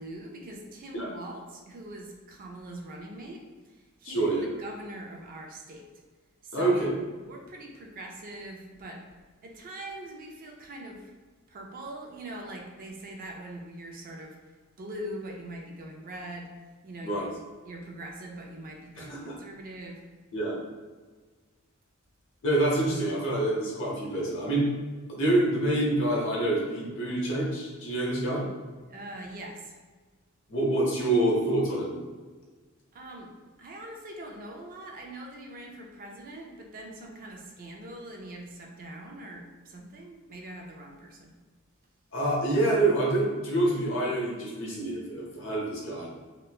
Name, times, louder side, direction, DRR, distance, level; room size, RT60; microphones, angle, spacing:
voice 1, 0.0-5.9 6.4-9.0 9.4-11.1 11.5-14.4 14.8-16.5 16.8-17.2 17.6-20.0 28.9-29.8 32.9-33.3 33.6-41.3, right 1 dB, 40° right, 1 dB, 0.4 m, -42 dB
voice 2, 4.0-4.5 6.5-6.9 17.0-17.3 19.0-19.4 20.3-20.6 22.4-24.7 25.1-28.4 30.5-32.0 42.1-46.1, right 1 dB, 65° left, -4 dB, 0.8 m, -26 dB
3.0 x 2.1 x 2.3 m, 1.3 s
head